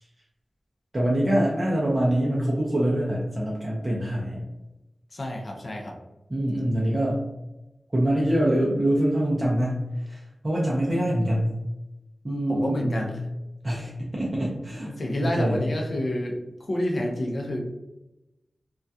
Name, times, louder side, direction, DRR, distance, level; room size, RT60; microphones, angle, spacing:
voice 1, 0.9-4.4 6.3-7.2 7.9-9.8 10.1-11.5 12.2-13.1 13.6-14.9 15.2-15.7, right 1 dB, 25° right, -5 dB, 0.5 m, -24 dB
voice 2, 5.1-5.9 12.5-13.2 14.8-16.4 16.7-17.6, left 1 dB, 55° left, 0 dB, 0.4 m, -28 dB
2.3 x 2.2 x 2.6 m, 0.97 s
wide cardioid pair, 100°, 0 cm